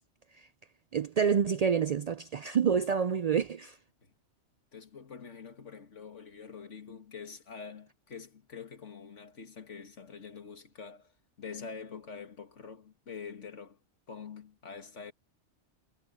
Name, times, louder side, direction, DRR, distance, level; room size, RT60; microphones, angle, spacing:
voice 1, 0.9-3.8, right 7 dB, 70° right, 0.3 m, -27 dB
voice 2, 4.7-13.8 14.1-15.1, left 6 dB, 90° left, 2.2 m, -46 dB
omnidirectional pair, 1.2 m